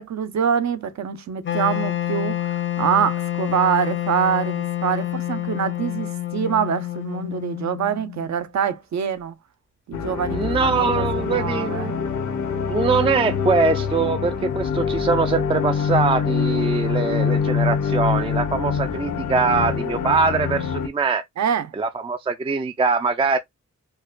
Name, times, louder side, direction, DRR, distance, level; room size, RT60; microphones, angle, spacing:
voice 1, 0.0-9.4 9.9-12.0 21.4-21.7, right 8 dB, 70° right, 0.6 m, -25 dB
Wind instrument woodwind instrument, 1.4-8.4, left 13 dB, 40° left, 0.4 m, -28 dB
sound 1, 9.9-20.9, left 6 dB, 75° left, 0.8 m, -24 dB
voice 2, 10.3-11.9 12.7-21.2 21.8-23.4, right 4 dB, 20° right, 0.3 m, -22 dB
4.6 x 2.2 x 2.3 m
wide cardioid pair, 140°, 29 cm